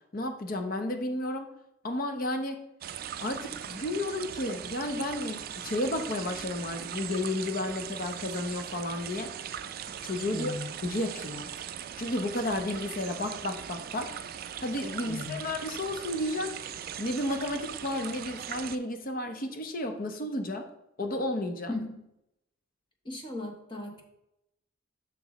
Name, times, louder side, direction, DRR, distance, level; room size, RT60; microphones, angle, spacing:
voice 1, 0.1-1.5 1.8-2.6 3.2-9.3 10.0-10.5 10.8-11.5 12.0-14.2 14.6-16.5 17.0-20.7 21.0-21.7, left 1 dB, 45° left, 6 dB, 0.8 m, -32 dB
sound 1, 2.8-18.8, right 9 dB, 50° right, 0.3 m, -40 dB
voice 2, 10.2-10.7 15.0-15.5 21.7-22.0 23.0-24.0, left 2 dB, 25° left, 1 dB, 1.1 m, -37 dB
7.5 x 6.1 x 3.1 m, 0.83 s
head